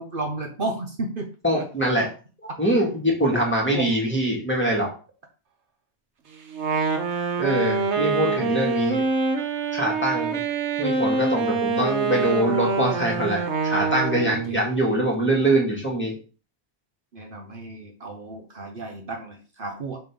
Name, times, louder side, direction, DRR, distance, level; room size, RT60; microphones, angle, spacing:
voice 1, 0.0-1.3 1.5-1.6 3.2-3.4 3.7-3.9 8.0-8.1 14.3-14.6 17.1-20.0, right 2 dB, 55° right, 3 dB, 1.1 m, -33 dB
voice 2, 1.4-2.0 2.6-4.9 7.4-9.0 9.7-10.4 10.8-16.2, right 1 dB, 10° left, -3 dB, 1.9 m, -23 dB
Wind instrument woodwind instrument, 6.5-14.5, right 4 dB, 85° right, 1.3 m, -25 dB
5.7 x 5.2 x 3.7 m, 0.37 s
omnidirectional pair, 1.1 m